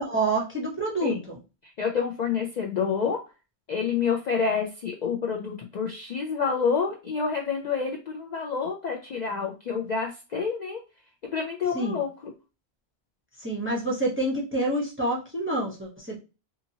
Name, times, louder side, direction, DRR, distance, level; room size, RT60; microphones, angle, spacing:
voice 1, 0.1-1.4 11.7-12.0 13.4-16.2, right 2 dB, 15° right, -1 dB, 0.6 m, -27 dB
voice 2, 1.6-3.2 3.7-10.8 11.3-12.3, left 6 dB, 55° left, 1 dB, 0.5 m, -28 dB
2.8 x 2.5 x 2.6 m, 0.29 s
omnidirectional pair, 1.1 m